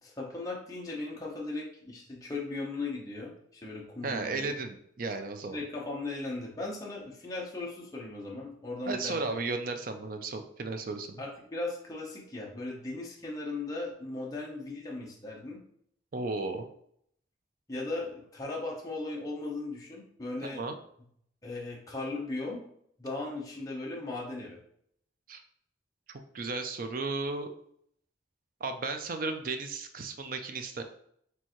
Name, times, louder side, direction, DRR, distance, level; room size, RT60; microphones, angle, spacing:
voice 1, 0.0-4.5 5.5-9.3 11.2-15.6 17.7-20.6 21.4-22.6 23.0-24.6, left 2 dB, 20° left, -4 dB, 0.8 m, -37 dB
voice 2, 4.0-5.6 8.9-11.2 16.1-16.7 20.6-20.7 25.3-25.4 26.3-27.5 28.6-30.8, right 3 dB, 45° right, 6 dB, 0.4 m, -34 dB
4.5 x 3.3 x 3.0 m, 0.68 s
head